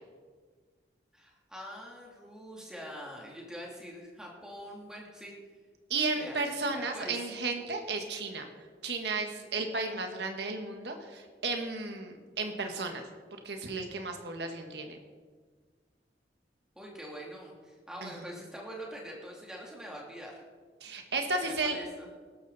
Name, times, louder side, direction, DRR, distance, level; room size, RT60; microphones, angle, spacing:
voice 1, 1.1-5.3 6.1-6.4 6.7-7.2 16.7-20.4 21.4-22.1, equal, 5° right, -3 dB, 3.0 m, -44 dB
voice 2, 5.9-8.5 8.8-13.0 13.4-15.0 18.0-18.1 20.8-21.8, right 3 dB, 75° right, 4 dB, 1.6 m, -33 dB
20.5 x 12.5 x 4.2 m, 1.5 s
head